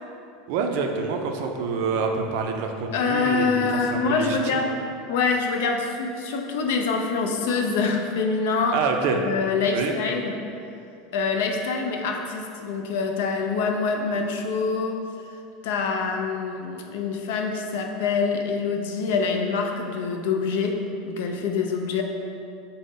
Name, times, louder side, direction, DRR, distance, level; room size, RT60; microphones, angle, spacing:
voice 1, 0.5-3.7 3.9-4.6 8.7-9.2 9.7-9.9, right 5 dB, 65° right, 3 dB, 0.3 m, -26 dB
voice 2, 2.9-4.8 5.1-8.8 9.1-10.4 11.1-15.0 15.6-22.0, left 4 dB, 75° left, 3 dB, 0.4 m, -25 dB
3.8 x 2.0 x 3.6 m, 2.5 s
supercardioid pair, 140°, 0 cm